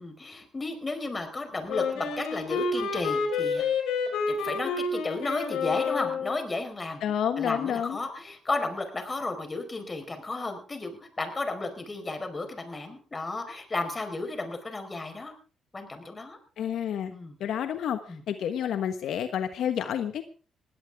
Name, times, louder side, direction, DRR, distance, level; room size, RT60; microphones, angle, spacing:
voice 1, 0.0-3.6 4.3-7.0 7.4-15.3 15.7-16.4 17.1-17.4 18.1-18.2, left 3 dB, 25° left, 7 dB, 4.7 m, -33 dB
Wind instrument woodwind instrument, 1.7-6.4, left 4 dB, 90° left, 4.9 m, -29 dB
voice 2, 7.0-8.0 16.6-17.1 17.4-18.0 18.3-20.2, left 9 dB, 75° left, 8 dB, 1.3 m, -29 dB
20.0 x 16.5 x 3.7 m, 0.37 s
cardioid pair, 90°, 0 cm